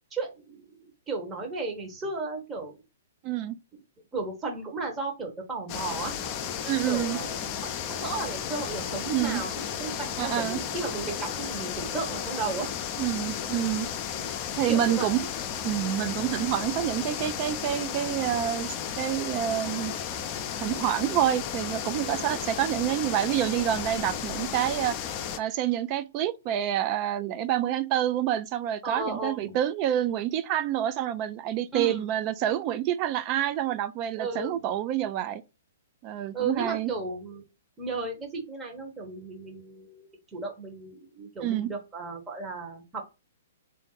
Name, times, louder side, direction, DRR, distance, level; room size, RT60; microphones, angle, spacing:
voice 1, 0.1-0.8 1.1-2.7 3.7-3.8 4.1-6.1 6.9-12.7 14.7-15.1 22.0-22.3 28.8-29.6 31.7-32.1 34.1-34.6 36.3-37.4 37.8-43.0, right 3 dB, 15° right, 1.0 m, -34 dB
voice 2, 3.2-3.6 6.7-7.2 9.1-9.4 10.2-10.6 13.0-13.9 14.6-15.2 15.6-18.7 19.0-19.9 20.6-24.9 25.4-35.4 36.0-36.9 41.4-41.7, right 11 dB, 35° right, 0.3 m, -27 dB
sound 1, 5.7-25.4, left 8 dB, 35° left, 0.5 m, -34 dB
3.4 x 2.6 x 3.8 m
hypercardioid pair, 125°, 0 cm